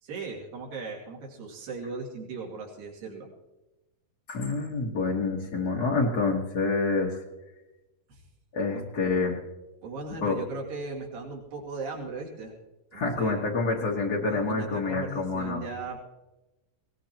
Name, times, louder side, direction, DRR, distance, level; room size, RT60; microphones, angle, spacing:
voice 1, 0.0-3.3 8.1-8.2 8.7-8.9 9.8-12.5 12.9-13.4 14.3-16.1, right 3 dB, 75° right, -2 dB, 4.3 m, -38 dB
voice 2, 4.3-7.2 8.5-9.4 10.2-10.4 12.9-15.6, left 3 dB, 65° left, -2 dB, 0.9 m, -27 dB
20.5 x 18.5 x 3.0 m, 1.0 s
omnidirectional pair, 4.2 m